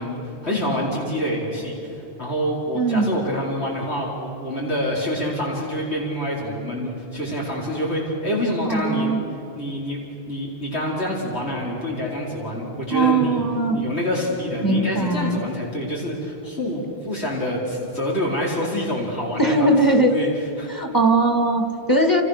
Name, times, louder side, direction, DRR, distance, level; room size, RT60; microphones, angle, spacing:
voice 1, 0.0-9.1 9.5-10.0 10.3-13.4 13.7-20.3 20.6-20.8, equal, 90° left, -4 dB, 5.0 m, -26 dB
voice 2, 2.7-3.2 8.7-9.2 12.9-13.8 14.6-15.4 19.4-20.1 20.7-22.2, right 2 dB, 20° left, 4 dB, 2.4 m, -20 dB
29.0 x 28.5 x 6.7 m, 2.9 s
omnidirectional pair, 1.1 m